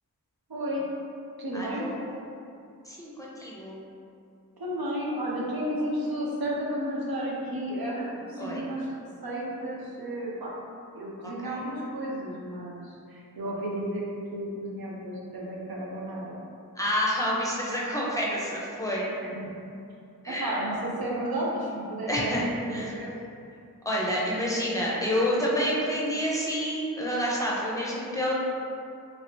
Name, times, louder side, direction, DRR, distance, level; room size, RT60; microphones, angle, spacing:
voice 1, 0.5-0.9 1.4-1.9 4.6-10.5 10.9-14.0 14.3-16.4 19.2-19.5 20.3-23.1, right 1 dB, 80° right, -5 dB, 0.7 m, -33 dB
voice 2, 1.5-2.2 2.9-3.8 8.4-8.6 11.2-11.6 16.8-19.1 20.2-20.8 22.1-22.9 23.8-28.3, equal, 10° left, -5 dB, 0.7 m, -29 dB
2.9 x 2.9 x 3.0 m, 2.6 s
wide cardioid pair, 40°, 36 cm